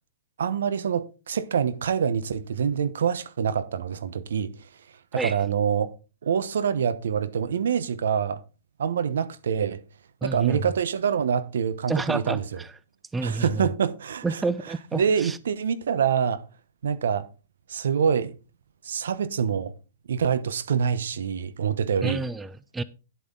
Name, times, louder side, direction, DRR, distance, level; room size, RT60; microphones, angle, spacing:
voice 1, 0.4-4.5 5.1-5.9 6.2-8.4 8.8-9.8 10.2-12.4 13.2-14.4 15.0-16.4 16.8-17.3 17.7-18.3 18.8-19.7 20.1-22.2, right 7 dB, 75° right, 0.9 m, -25 dB
voice 2, 10.2-10.6 11.9-12.7 13.1-13.7 14.2-15.4 22.0-22.8, right 3 dB, 10° right, 0.5 m, -29 dB
10.5 x 8.3 x 3.8 m
hypercardioid pair, 125°, 0 cm